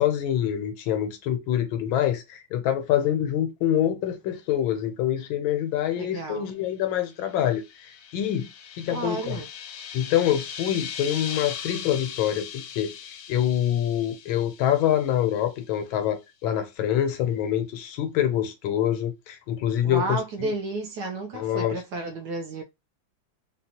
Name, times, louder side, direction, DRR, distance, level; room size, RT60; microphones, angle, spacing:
voice 1, 0.0-7.6 8.1-8.5 8.8-9.4 9.9-20.5 21.3-21.8, left 10 dB, 90° left, 1.5 m, -25 dB
voice 2, 6.0-6.5 8.9-9.5 19.8-22.6, right 3 dB, 70° right, 1.1 m, -32 dB
sound 1, 7.2-15.5, left 8 dB, 70° left, 1.0 m, -39 dB
3.9 x 2.3 x 2.8 m
omnidirectional pair, 2.1 m